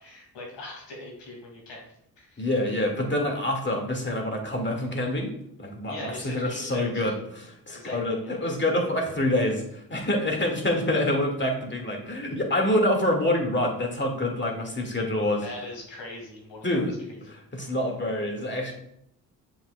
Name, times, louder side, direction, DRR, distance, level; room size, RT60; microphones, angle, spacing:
voice 1, 0.0-1.8 2.2-2.5 5.9-7.0 7.7-8.4 15.4-17.3, left 2 dB, 70° left, -1 dB, 2.5 m, -41 dB
voice 2, 2.4-5.3 5.6-15.4 16.6-16.9 17.3-18.7, left 1 dB, 25° left, 1 dB, 2.1 m, -26 dB
7.0 x 6.3 x 2.3 m, 0.74 s
hypercardioid pair, 45°, 43 cm